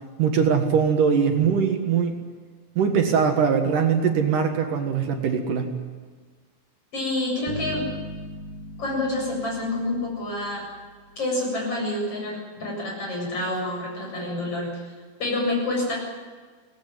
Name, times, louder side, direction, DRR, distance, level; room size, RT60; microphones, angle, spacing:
voice 1, 0.2-2.2 2.8-5.8, right 6 dB, 65° right, 5 dB, 3.0 m, -21 dB
voice 2, 6.9-7.9 8.8-10.7 11.2-14.9 15.2-16.0, left 2 dB, 40° left, -1 dB, 8.8 m, -28 dB
sound 1, 7.5-10.9, right 1 dB, 85° right, 4.3 m, -39 dB
23.0 x 18.5 x 9.3 m, 1.5 s
omnidirectional pair, 4.2 m